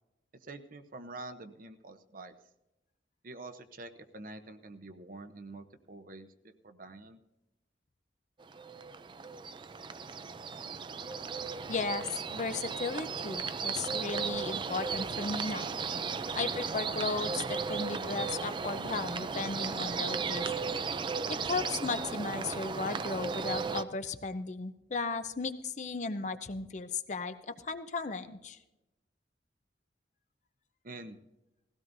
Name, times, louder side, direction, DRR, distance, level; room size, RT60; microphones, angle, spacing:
voice 1, 0.4-2.4 3.2-7.2 30.8-31.2, right 2 dB, 50° right, 8 dB, 0.8 m, -47 dB
sound 1, 8.4-23.8, right 5 dB, 25° right, 0.4 m, -35 dB
voice 2, 11.7-15.7 16.3-20.5 21.3-28.6, left 4 dB, 45° left, 10 dB, 0.6 m, -36 dB
17.5 x 16.0 x 2.6 m, 0.96 s
head